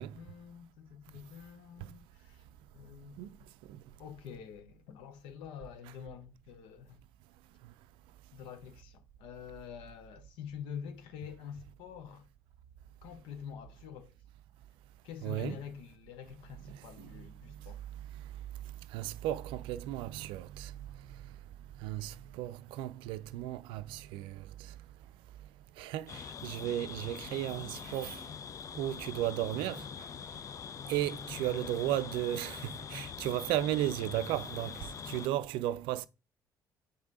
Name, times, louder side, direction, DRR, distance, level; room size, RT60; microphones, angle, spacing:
voice 1, 0.0-2.4 2.7-3.2 4.0-7.0 8.3-12.3 13.0-14.2 15.0-17.8, left 8 dB, 65° left, 0.9 m, -46 dB
voice 2, 15.2-15.6 16.7-17.1 18.9-20.7 21.8-24.7 25.8-28.2 28.7-30.1 30.9-36.1, right 13 dB, 60° right, 0.4 m, -35 dB
sound 1, 26.1-35.3, left 7 dB, 35° left, 0.3 m, -44 dB
6.6 x 5.2 x 3.9 m
figure-of-eight pair, 50°, 10 cm